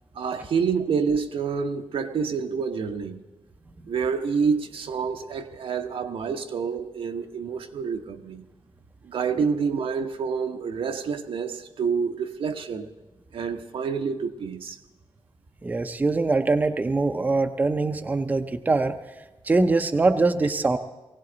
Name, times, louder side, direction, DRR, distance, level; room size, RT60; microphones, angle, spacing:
voice 1, 0.1-3.2 3.9-8.4 9.0-12.9 13.3-14.8, right 6 dB, 80° right, 6 dB, 1.0 m, -28 dB
voice 2, 15.6-18.9 19.4-20.8, right 3 dB, 20° right, 8 dB, 0.5 m, -23 dB
19.5 x 17.0 x 3.9 m, 1.1 s
wide cardioid pair, 180°, 9 cm